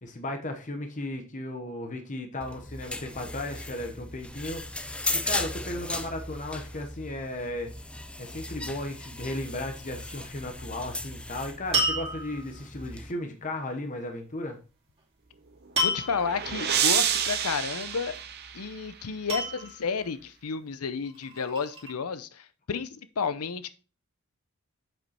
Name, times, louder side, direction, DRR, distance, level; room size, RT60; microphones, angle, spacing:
voice 1, 0.0-4.7 5.1-7.7 8.2-14.6, left 1 dB, 35° left, 0.9 m, -35 dB
sound 1, 2.4-13.1, left 2 dB, 5° left, 0.4 m, -37 dB
sound 2, 11.7-12.6 15.8-16.4 17.7-18.2 19.3-20.1 21.0-21.9, equal, 30° right, 2.6 m, -30 dB
sound 3, 15.6-19.0, right 9 dB, 45° right, 0.8 m, -29 dB
voice 2, 15.8-18.2 18.5-23.7, left 5 dB, 90° left, 0.6 m, -32 dB
7.7 x 5.2 x 4.2 m
head